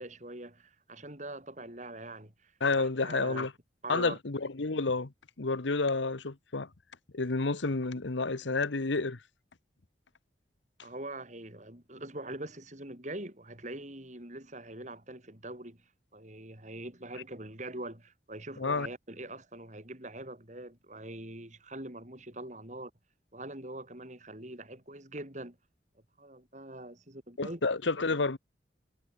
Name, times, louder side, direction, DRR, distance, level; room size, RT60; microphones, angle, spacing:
voice 1, 0.0-2.5 2.8-3.5 3.8-4.2 10.8-15.8 16.1-22.9 23.3-25.6 26.2-27.6 28.0-28.2, right 1 dB, 40° right, 4.8 m, -43 dB
voice 2, 2.6-3.5 3.9-5.1 5.4-6.7 7.1-9.2 18.6-18.9 27.4-28.4, left 3 dB, 85° left, 1.2 m, -30 dB
head